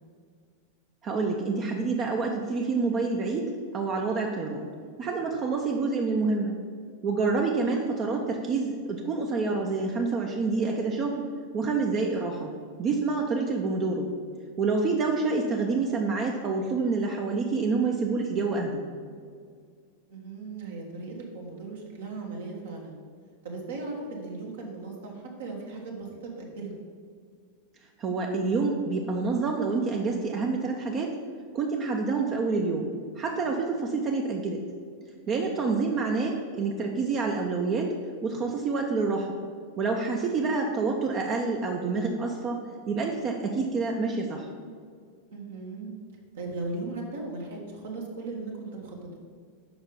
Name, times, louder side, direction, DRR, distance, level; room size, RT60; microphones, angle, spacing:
voice 1, 1.0-4.7 5.0-6.5 7.0-11.3 11.5-12.5 12.8-14.1 14.6-18.8 28.0-31.2 31.5-32.9 33.2-34.6 35.3-37.9 38.2-39.4 39.8-44.5, right 4 dB, 30° right, 1 dB, 0.7 m, -27 dB
voice 2, 20.1-23.0 23.4-26.7 35.4-35.7 40.3-40.5 45.3-45.9 46.3-49.2, right 3 dB, 60° right, -1 dB, 1.4 m, -38 dB
6.9 x 5.5 x 5.2 m, 2.1 s
figure-of-eight pair, 90°, 0 cm